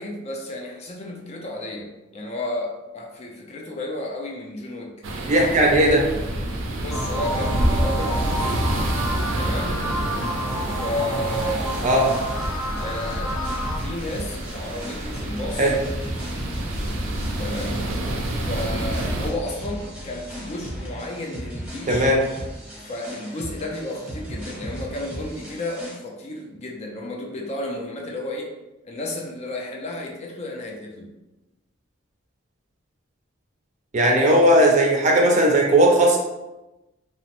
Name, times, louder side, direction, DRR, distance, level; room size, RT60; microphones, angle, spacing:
voice 1, 0.0-4.9 6.8-8.6 9.4-9.8 10.7-11.7 12.8-13.3 13.8-15.7 17.4-17.8 18.5-22.1 22.8-28.5 28.8-31.1, left 1 dB, 35° left, 0 dB, 0.3 m, -32 dB
sound 1, 5.0-19.3, right 1 dB, 90° right, 0.5 m, -28 dB
voice 2, 5.3-6.0 11.8-12.1 15.6-15.7 21.9-22.2 33.9-36.2, right 1 dB, 35° right, 0 dB, 0.5 m, -17 dB
sound 2, 6.9-13.8, equal, 90° left, 1.0 m, -30 dB
sound 3, 11.2-26.0, equal, 5° right, 0.7 m, -35 dB
2.9 x 2.0 x 2.9 m, 1.0 s
head